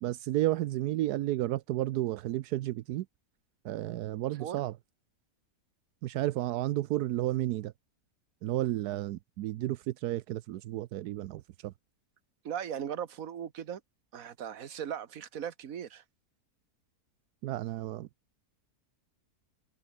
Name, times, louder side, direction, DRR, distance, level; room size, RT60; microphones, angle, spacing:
voice 1, 0.0-3.1 3.6-4.8 6.0-7.7 8.4-11.7 17.4-18.1, right 15 dB, 85° right, 1.2 m, -32 dB
voice 2, 12.4-13.8 14.1-16.0, right 9 dB, 65° right, 1.6 m, -38 dB
omnidirectional pair, 1.6 m